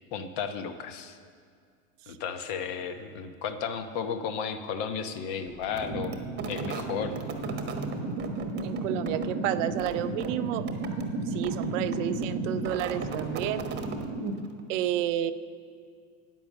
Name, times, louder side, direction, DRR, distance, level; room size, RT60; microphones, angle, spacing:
voice 1, 0.1-1.2 2.1-6.2 6.5-7.2, left 6 dB, 45° left, 9 dB, 1.0 m, -34 dB
sound 1, 5.6-14.6, right 3 dB, 25° right, 1.2 m, -33 dB
voice 2, 8.6-10.7 11.3-13.7 14.7-15.3, right 12 dB, 60° right, 12 dB, 0.6 m, -30 dB
10.5 x 9.3 x 7.5 m, 2.1 s
supercardioid pair, 130°, 42 cm